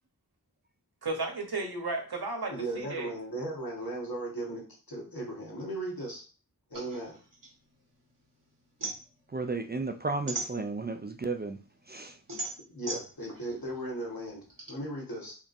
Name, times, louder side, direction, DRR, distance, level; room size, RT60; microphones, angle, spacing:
voice 1, 1.0-3.1, right 3 dB, 90° right, 1.0 m, -34 dB
voice 2, 2.5-6.2 6.7-7.2 12.6-15.3, right 1 dB, 70° left, 1.7 m, -37 dB
sound 1, 6.7-8.2 8.5-11.1 11.5-14.7, right 2 dB, 60° right, 1.4 m, -39 dB
voice 3, 9.3-11.6 11.9-12.2, right 3 dB, 30° right, 0.4 m, -33 dB
3.7 x 3.5 x 2.6 m
wide cardioid pair, 45°, 37 cm